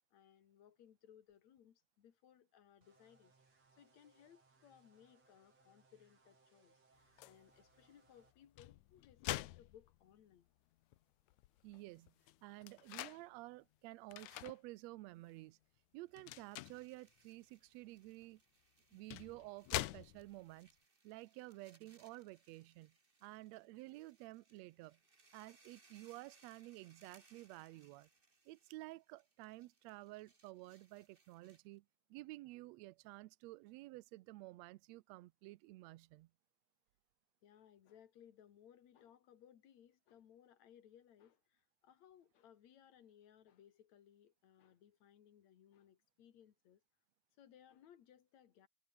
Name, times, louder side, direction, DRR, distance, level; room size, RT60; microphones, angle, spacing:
voice 1, 0.0-3.3 3.8-10.5 37.4-46.8 47.4-48.7, left 9 dB, 70° left, 3.1 m, -64 dB
sound 1, 2.8-8.3, right 4 dB, 60° right, 6.7 m, -72 dB
sound 2, 7.2-7.4 8.4-10.3 10.9-11.0 11.3-13.2 14.1-14.6 15.1-15.3 16.2-16.9 18.2-18.3 18.9-20.5, left 16 dB, 90° left, 2.1 m, -45 dB
voice 2, 11.6-12.1 12.4-15.6 15.9-18.4 18.9-20.8 21.0-22.9 23.2-25.0 25.3-28.1 28.5-36.3, right 19 dB, 75° right, 1.8 m, -52 dB
sound 3, 16.0-31.8, right 3 dB, 20° right, 2.4 m, -72 dB
omnidirectional pair, 3.3 m